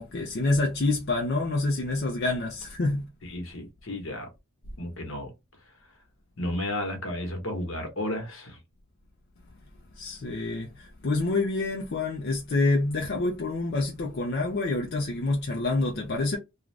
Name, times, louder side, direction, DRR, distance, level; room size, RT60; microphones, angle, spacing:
voice 1, 0.0-3.0 10.0-16.4, left 2 dB, 50° left, 0.5 m, -27 dB
voice 2, 3.2-4.3 4.8-5.3 6.4-8.6, left 1 dB, 70° left, 1.1 m, -33 dB
2.5 x 2.4 x 3.1 m
head